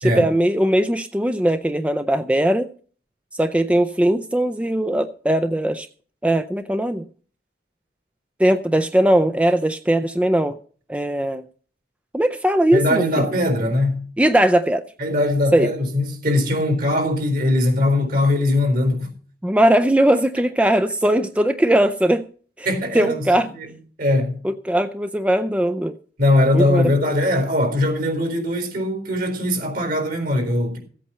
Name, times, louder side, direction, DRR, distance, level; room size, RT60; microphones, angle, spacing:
voice 1, 0.0-2.7 3.3-5.9 6.2-7.0 8.4-10.6 10.9-11.4 12.1-13.2 14.2-14.8 15.5-15.7 19.4-22.3 22.6-22.7 22.9-23.5 24.7-25.9 26.5-26.9, right 1 dB, 5° right, 0.5 m, -19 dB
voice 2, 12.7-14.1 15.0-19.1 22.6-23.3 23.5-23.7 24.0-24.4 26.2-30.8, left 1 dB, 55° right, 4.1 m, -20 dB
15.5 x 8.4 x 5.6 m
head